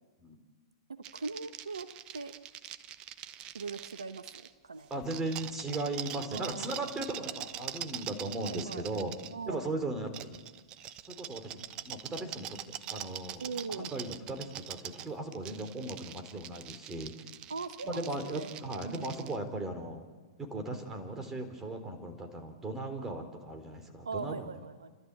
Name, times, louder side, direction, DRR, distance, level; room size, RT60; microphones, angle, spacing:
voice 1, 0.9-2.3 3.5-4.3 4.6-4.9 6.3-6.9 8.4-8.9 9.3-9.8 13.4-13.9 17.5-18.5 18.8-19.2 24.0-24.9, right 4 dB, 85° right, 10 dB, 1.1 m, -40 dB
sound 1, 1.0-4.5 4.9-9.3 10.1-19.4, right 12 dB, 35° right, 0.9 m, -44 dB
voice 2, 4.9-9.1 9.5-10.4 11.0-12.6 12.9-17.2 17.8-20.1 20.4-24.6, right 2 dB, 15° right, 5 dB, 4.2 m, -37 dB
29.5 x 13.5 x 8.6 m, 1.4 s
figure-of-eight pair, 110°, 3 cm